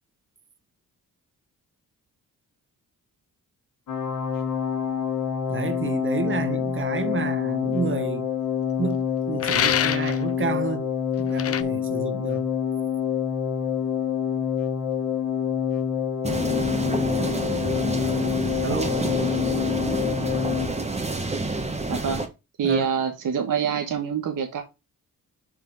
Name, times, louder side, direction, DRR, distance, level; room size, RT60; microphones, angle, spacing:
sound 1, 3.9-20.7, left 8 dB, 85° left, 1.6 m, -27 dB
voice 1, 5.5-8.3 8.8-10.9 11.2-12.4 18.6-19.1 22.6-22.9, right 5 dB, 35° right, 1.1 m, -30 dB
sound 2, 9.4-10.2 11.4-11.6, left 9 dB, 45° left, 0.6 m, -24 dB
sound 3, 16.2-22.3, right 2 dB, 20° right, 1.4 m, -28 dB
voice 2, 21.9-22.2 22.6-24.6, right 7 dB, 70° right, 1.3 m, -25 dB
6.0 x 4.4 x 5.2 m
cardioid pair, 75°, 33 cm